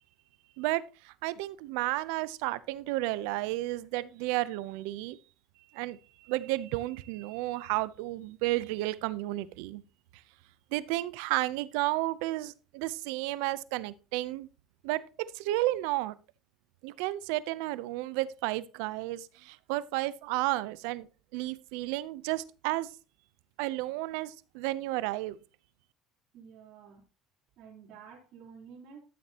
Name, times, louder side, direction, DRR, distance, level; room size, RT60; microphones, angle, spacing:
voice 1, 0.6-5.2 5.7-9.8 10.7-14.5 14.8-15.0 15.3-16.2 16.8-21.1 21.3-22.9 23.6-25.4, right 17 dB, 85° right, 0.7 m, -32 dB
voice 2, 26.3-27.0 27.6-29.0, right 6 dB, 65° right, 3.9 m, -50 dB
12.5 x 7.2 x 2.9 m
supercardioid pair, 105°, 0 cm